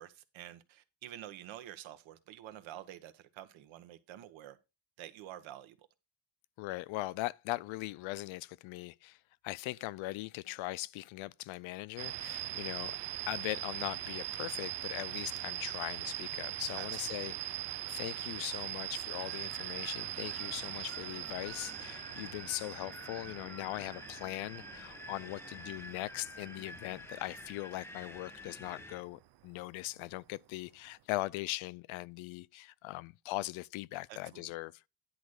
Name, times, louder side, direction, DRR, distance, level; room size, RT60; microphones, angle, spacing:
voice 1, 0.0-4.6 5.0-5.9 16.7-17.4 34.1-34.5, right 12 dB, 80° right, 1.2 m, -49 dB
voice 2, 6.6-9.2 9.4-13.0 13.3-17.6 17.9-34.7, left 19 dB, 85° left, 0.5 m, -40 dB
sound 1, 12.0-28.6, right 15 dB, 60° right, 0.7 m, -41 dB
Wind, 19.1-29.0, left 1 dB, 5° left, 0.5 m, -50 dB
10.5 x 4.0 x 6.4 m
cardioid pair, 170°, 46 cm